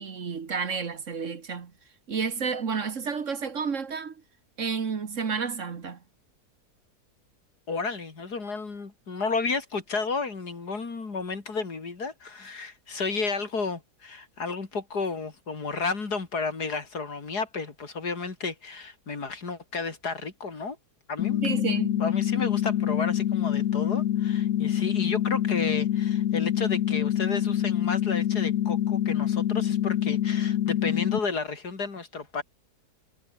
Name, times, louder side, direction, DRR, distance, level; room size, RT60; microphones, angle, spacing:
voice 1, 0.0-1.7 2.1-4.2 4.6-6.0 21.4-22.0, right 5 dB, 50° right, 1.7 m, -31 dB
voice 2, 7.7-20.8 21.1-21.4 22.0-32.4, left 4 dB, 75° left, 3.6 m, -32 dB
sound 1, 21.2-31.2, left 11 dB, 60° left, 1.1 m, -26 dB
omnidirectional pair, 1.7 m